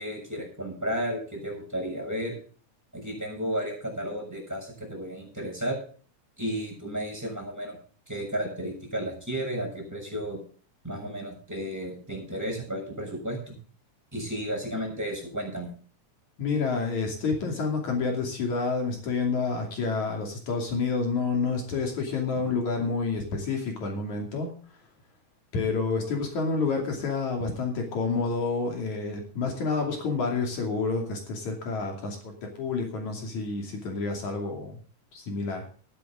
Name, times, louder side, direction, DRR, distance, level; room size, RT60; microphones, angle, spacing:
voice 1, 0.0-2.4 2.9-5.8 6.4-7.8 8.1-10.4 10.8-13.5 14.1-15.7, equal, 5° right, 0 dB, 6.8 m, -33 dB
voice 2, 16.4-24.6 25.5-34.8 35.1-35.6, left 4 dB, 65° left, 2 dB, 4.0 m, -29 dB
15.0 x 12.5 x 3.8 m, 0.42 s
omnidirectional pair, 3.6 m